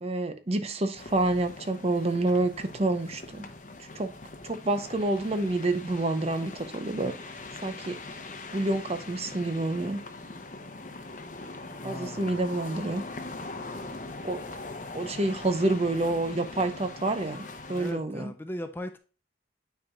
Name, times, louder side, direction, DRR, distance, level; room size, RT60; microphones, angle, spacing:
voice 1, 0.0-3.5 3.9-4.1 4.4-7.1 7.6-8.2 8.5-10.0 11.8-13.0 14.2-14.4 14.9-17.4 17.7-18.3, right 2 dB, 35° right, 0.7 m, -28 dB
sound 1, 0.9-17.9, left 3 dB, 45° left, 0.9 m, -42 dB
voice 2, 11.8-12.4 17.7-19.0, left 1 dB, 10° left, 0.5 m, -38 dB
9.2 x 4.7 x 2.4 m
head